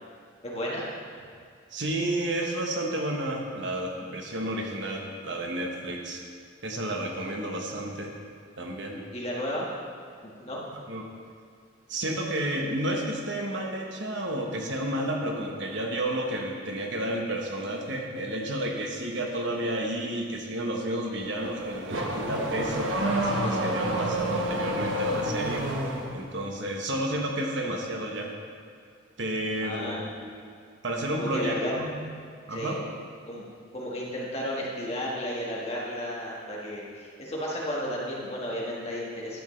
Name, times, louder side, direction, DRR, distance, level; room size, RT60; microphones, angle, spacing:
voice 1, 0.4-0.9 9.1-9.7 10.4-10.6 29.6-30.0 31.1-31.7 32.5-32.8 33.2-33.4 33.7-39.4, equal, 30° left, -4 dB, 1.5 m, -33 dB
voice 2, 1.7-6.2 6.6-8.1 8.6-9.0 10.7-11.1 11.9-25.6 26.1-28.3 29.2-30.4 30.8-32.0 32.5-32.8, right 1 dB, 65° right, 0 dB, 1.2 m, -31 dB
Car / Accelerating revving vroom, 21.2-26.2, right 1 dB, 80° right, 0.9 m, -29 dB
11.5 x 8.0 x 3.3 m, 2.2 s
head